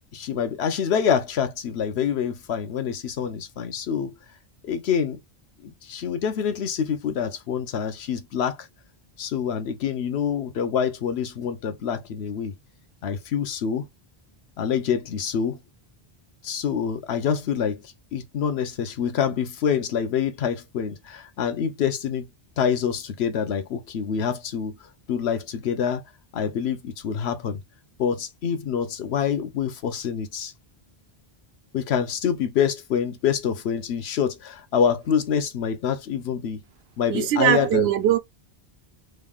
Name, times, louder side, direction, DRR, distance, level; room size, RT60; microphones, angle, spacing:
voice 1, 0.1-4.1 4.6-5.2 5.6-8.7 9.2-12.5 13.0-13.9 14.6-15.6 16.4-17.8 18.1-22.3 22.6-24.7 25.1-26.0 26.3-27.6 28.0-30.5 31.7-36.6 37.0-37.9, left 7 dB, 85° left, 1.0 m, -26 dB
voice 2, 37.1-38.2, right 11 dB, 90° right, 0.9 m, -20 dB
3.2 x 2.4 x 3.4 m
omnidirectional pair, 1.0 m